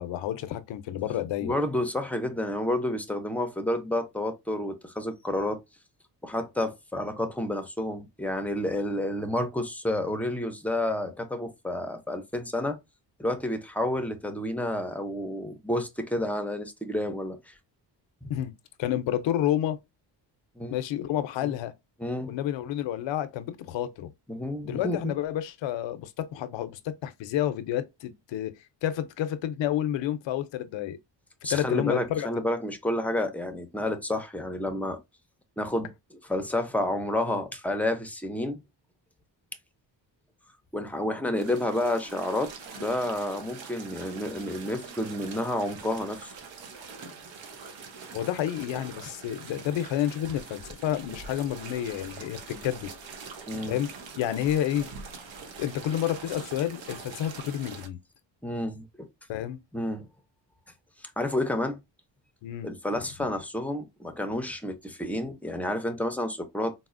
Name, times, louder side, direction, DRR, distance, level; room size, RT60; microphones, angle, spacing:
voice 1, 0.0-1.6 18.3-18.5 18.8-19.8 20.7-21.7 22.3-24.1 24.6-28.5 28.8-31.0 31.5-32.3 48.1-52.9 53.6-53.9 54.2-54.9 55.6-58.0 59.3-59.6 62.4-62.7, left 11 dB, 80° left, 0.6 m, -30 dB
voice 2, 1.4-5.6 6.2-12.8 13.2-17.5 18.2-18.3 20.6-20.8 21.4-21.5 22.0-22.3 24.3-25.1 31.4-35.0 35.6-38.6 40.7-46.3 53.5-53.8 58.4-59.1 59.7-60.1 61.0-61.8 62.6-66.7, left 1 dB, 5° left, 0.4 m, -30 dB
sound 1, 41.4-57.9, right 5 dB, 90° right, 0.9 m, -44 dB
4.1 x 2.0 x 2.4 m
cardioid pair, 115°, 44 cm